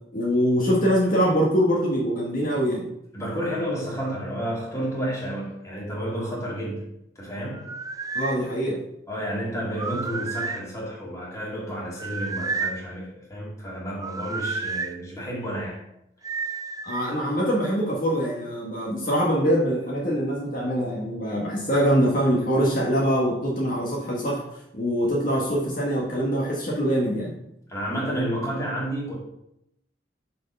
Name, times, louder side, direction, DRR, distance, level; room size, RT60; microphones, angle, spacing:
voice 1, 0.1-2.9 8.1-8.8 16.8-24.4 24.7-27.3, equal, 50° left, 1.4 m, -23 dB
voice 2, 3.1-6.9 7.2-7.7 9.1-15.8 27.7-29.2, equal, 20° left, 2.3 m, -31 dB
sound 1, 7.5-8.4 9.7-10.7 12.0-12.8 14.0-14.9 16.2-17.1, right 4 dB, 20° right, 0.4 m, -31 dB
6.4 x 4.4 x 5.4 m
head